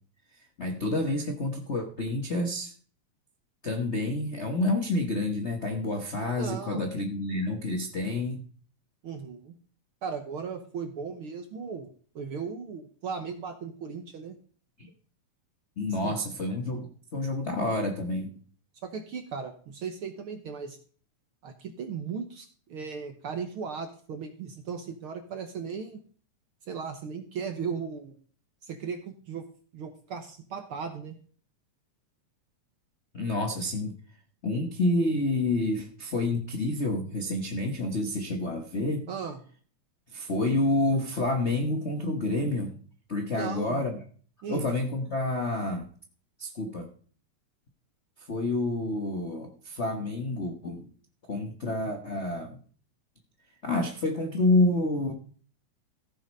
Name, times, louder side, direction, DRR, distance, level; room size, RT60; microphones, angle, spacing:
voice 1, 0.6-2.7 3.6-8.4 14.8-14.9 15.8-18.3 33.1-33.9 34.4-39.1 40.1-42.7 43.1-44.0 44.5-45.9 46.4-46.9 48.3-50.9 51.3-52.6 53.6-55.1, left 2 dB, 85° left, 4 dB, 0.6 m, -28 dB
voice 2, 6.4-6.8 9.0-9.5 10.0-11.9 12.1-14.4 16.0-16.1 18.8-20.8 21.4-26.0 26.7-28.2 28.6-29.4 29.7-31.2 39.1-39.4 43.4-43.8 44.4-44.7, right 6 dB, 60° right, 6 dB, 1.5 m, -37 dB
15.0 x 6.6 x 5.4 m, 0.43 s
omnidirectional pair, 3.4 m